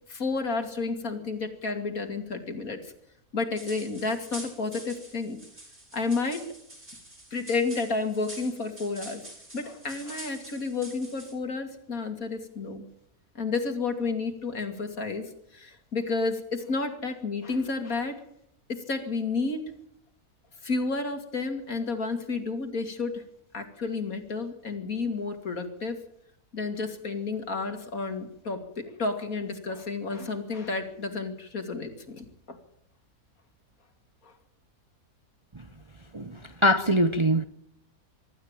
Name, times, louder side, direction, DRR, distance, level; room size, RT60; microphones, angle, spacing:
voice 1, 0.1-2.9 3.3-5.4 5.9-6.4 7.3-9.2 9.5-12.8 13.3-18.2 18.7-19.7 20.6-23.2 23.5-26.0 26.5-32.6 34.2-34.3, left 3 dB, 65° left, 3.1 m, -31 dB
sound 1, 3.6-11.3, right 1 dB, 45° right, 6.5 m, -46 dB
voice 2, 36.6-37.4, equal, 25° right, 0.6 m, -22 dB
24.0 x 12.5 x 8.9 m
omnidirectional pair, 1.6 m